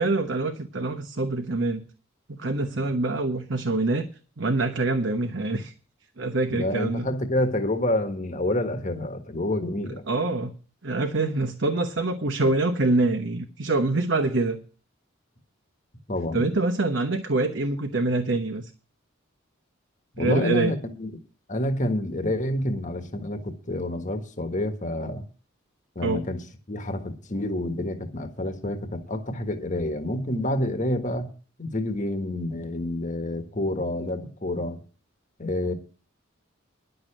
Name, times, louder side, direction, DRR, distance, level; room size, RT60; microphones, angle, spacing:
voice 1, 0.0-1.9 2.3-4.1 4.4-5.7 6.2-7.1 10.1-10.5 10.8-14.6 16.3-18.7 20.2-20.7 26.0-26.2, right 2 dB, 60° right, 1.1 m, -25 dB
voice 2, 6.5-10.1 16.1-16.5 20.1-21.1 21.5-25.2 25.9-26.4 26.7-31.3 31.6-34.8 35.4-35.7, left 1 dB, 35° left, 1.5 m, -28 dB
11.0 x 6.8 x 8.8 m
head